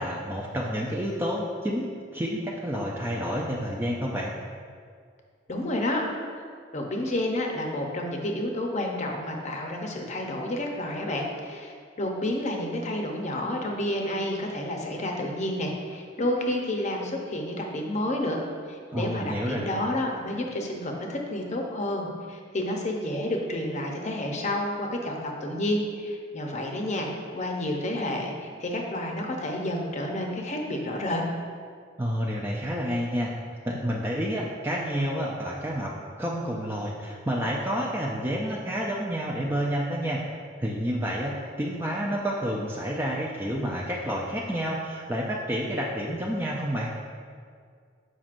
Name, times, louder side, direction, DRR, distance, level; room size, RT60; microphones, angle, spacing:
voice 1, 0.0-4.3 18.9-19.6 32.0-33.3 33.6-40.2 40.6-46.9, equal, 10° right, -4 dB, 0.4 m, -29 dB
voice 2, 5.5-6.0 6.7-18.4 18.7-31.2, left 1 dB, 40° left, 1 dB, 0.7 m, -30 dB
7.3 x 5.1 x 2.5 m, 2.1 s
head